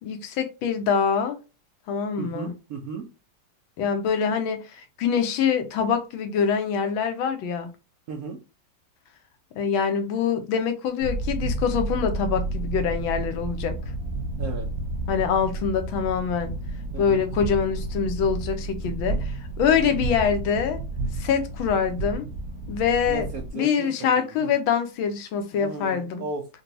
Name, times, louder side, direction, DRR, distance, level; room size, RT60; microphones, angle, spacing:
voice 1, 0.0-1.4 1.9-2.5 3.8-7.7 9.6-13.8 15.1-16.5 17.0-20.8 21.2-22.3 22.7-23.3 23.5-26.2, left 7 dB, 85° left, 1.5 m, -25 dB
voice 2, 2.2-3.1 8.1-8.4 14.4-14.7 16.9-17.2 19.7-20.0 23.1-24.5 25.6-26.6, right 4 dB, 70° right, 0.9 m, -36 dB
sound 1, 11.0-23.5, right 2 dB, 30° right, 0.8 m, -31 dB
4.0 x 2.2 x 2.7 m
omnidirectional pair, 2.1 m